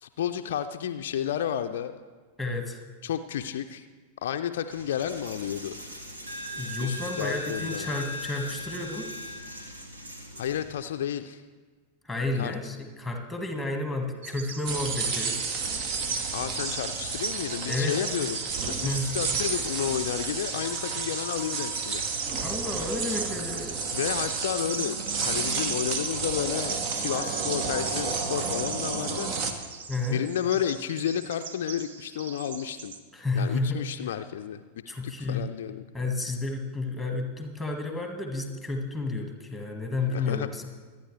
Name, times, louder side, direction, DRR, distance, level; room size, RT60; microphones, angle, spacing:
voice 1, 0.0-2.0 3.0-3.8 4.2-5.7 6.8-7.9 10.4-11.4 12.4-12.5 16.3-22.0 23.9-25.0 25.2-29.3 30.1-32.9 33.3-34.6 35.0-35.8 40.1-40.5, left 9 dB, 60° left, 7 dB, 0.5 m, -31 dB
voice 2, 2.4-2.8 6.6-9.1 12.0-15.4 17.6-18.0 18.8-19.1 22.4-23.7 29.9-30.2 33.1-33.8 34.9-35.5 35.9-40.6, left 3 dB, 5° left, 4 dB, 1.7 m, -31 dB
Coin (dropping), 4.7-10.7, left 1 dB, 75° right, 2.1 m, -39 dB
Bird vocalization bird call bird song, 14.2-33.0, right 6 dB, 60° right, 0.9 m, -39 dB
sound 1, 14.7-29.5, right 4 dB, 40° right, 1.3 m, -31 dB
25.0 x 9.5 x 3.3 m, 1.5 s
figure-of-eight pair, 90°, 0 cm